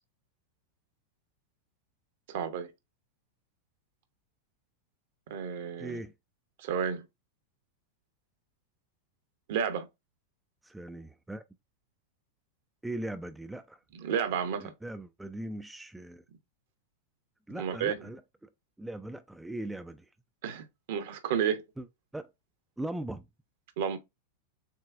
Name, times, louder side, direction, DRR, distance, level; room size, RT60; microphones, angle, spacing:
voice 1, 2.3-2.7 5.3-6.0 6.6-7.0 9.5-9.9 13.9-14.7 17.5-18.0 20.4-21.6 23.8-24.0, right 7 dB, 55° right, 0.8 m, -31 dB
voice 2, 5.8-6.1 10.6-11.4 12.8-13.8 14.6-16.2 17.5-18.5 18.8-20.1 21.8-21.9 22.1-22.3 22.8-23.3, right 1 dB, 5° right, 0.4 m, -39 dB
6.7 x 2.3 x 2.5 m
figure-of-eight pair, 90°, 0 cm